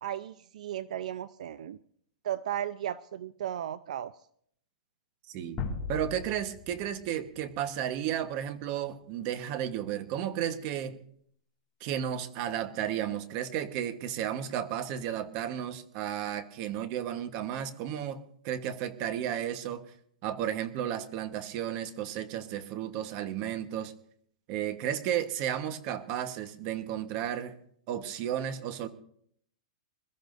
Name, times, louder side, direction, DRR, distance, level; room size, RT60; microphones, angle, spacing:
voice 1, 0.0-1.8 2.2-4.1, right 11 dB, 70° right, 14 dB, 0.5 m, -35 dB
voice 2, 5.3-5.6 5.9-11.0 11.8-19.8 20.2-23.9 24.5-27.5 27.9-28.9, right 10 dB, 35° right, 9 dB, 1.2 m, -33 dB
sound 1, 5.6-8.5, left 5 dB, 20° left, 2.4 m, -39 dB
26.5 x 14.0 x 2.6 m, 0.65 s
supercardioid pair, 165°, 4 cm